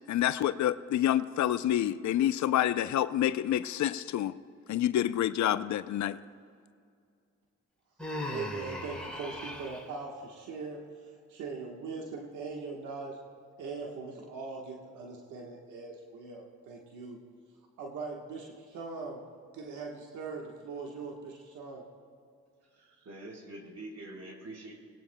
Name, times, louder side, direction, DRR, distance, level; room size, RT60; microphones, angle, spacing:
voice 1, 0.1-4.3 4.7-6.2, left 11 dB, 70° left, 14 dB, 0.6 m, -28 dB
Human voice, 8.0-9.9, left 1 dB, 5° left, 4.2 m, -38 dB
voice 2, 8.3-13.2 13.6-17.2 17.8-19.2 19.5-21.8 22.8-23.0, right 4 dB, 90° right, 0 dB, 1.3 m, -41 dB
voice 3, 22.7-24.8, right 2 dB, 60° right, -1 dB, 4.3 m, -45 dB
24.5 x 18.5 x 2.2 m, 2.3 s
supercardioid pair, 45°, 30 cm